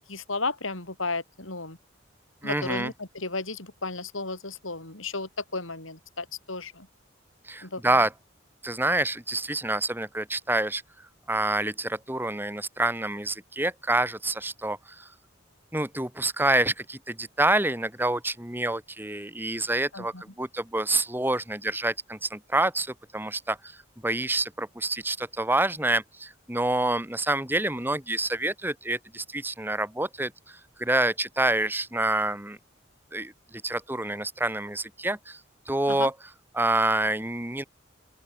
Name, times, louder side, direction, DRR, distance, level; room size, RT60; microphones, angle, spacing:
voice 1, 0.1-1.8 2.4-6.9 7.6-8.1 19.9-20.2 35.8-36.1, left 3 dB, 80° left, 5.6 m, -34 dB
voice 2, 2.4-2.9 7.5-8.1 8.6-10.8 11.3-15.1 15.7-23.8 24.0-32.6 33.1-35.4 35.7-36.1 36.5-37.6, right 2 dB, 10° right, 1.9 m, -27 dB
open air
head